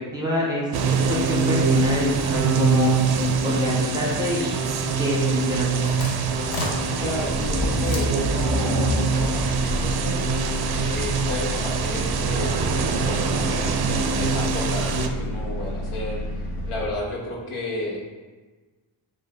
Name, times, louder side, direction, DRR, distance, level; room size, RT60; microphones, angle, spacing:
voice 1, 0.1-2.9 3.4-5.9, left 1 dB, 10° right, -4 dB, 1.1 m, -27 dB
sound 1, 0.7-15.1, right 5 dB, 50° right, 0.5 m, -24 dB
sound 2, 5.5-17.0, left 1 dB, 45° left, 0.9 m, -29 dB
voice 2, 7.0-10.2 10.7-16.2 16.7-18.0, left 1 dB, 80° left, -2 dB, 1.1 m, -32 dB
5.1 x 2.5 x 3.8 m, 1.3 s
cardioid pair, 90°, 49 cm